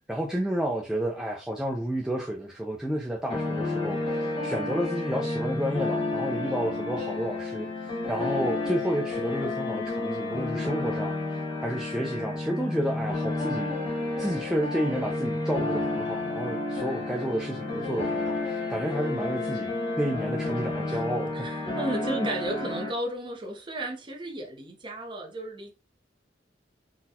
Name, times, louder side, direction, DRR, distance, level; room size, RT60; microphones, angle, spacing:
voice 1, 0.1-13.7 14.2-21.3 22.0-22.3, equal, 5° right, 0.3 m, -31 dB
sound 1, 3.3-22.9, left 2 dB, 30° left, 0.8 m, -31 dB
voice 2, 21.3-25.7, right 1 dB, 25° right, 0.7 m, -34 dB
3.9 x 2.2 x 2.7 m
head